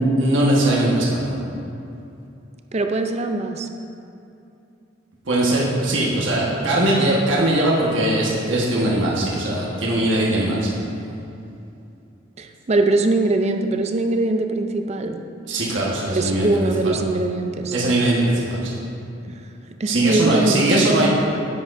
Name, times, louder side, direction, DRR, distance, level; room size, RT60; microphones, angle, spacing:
voice 1, 0.2-1.4 5.2-10.7 15.5-16.9 17.7-18.8 19.9-21.1, right 1 dB, 80° right, -4 dB, 1.3 m, -20 dB
voice 2, 2.7-3.7 12.4-15.2 16.0-17.8 19.2-19.3 19.8-21.0, right 2 dB, 35° right, 5 dB, 0.4 m, -22 dB
10.0 x 7.6 x 2.6 m, 2.7 s
head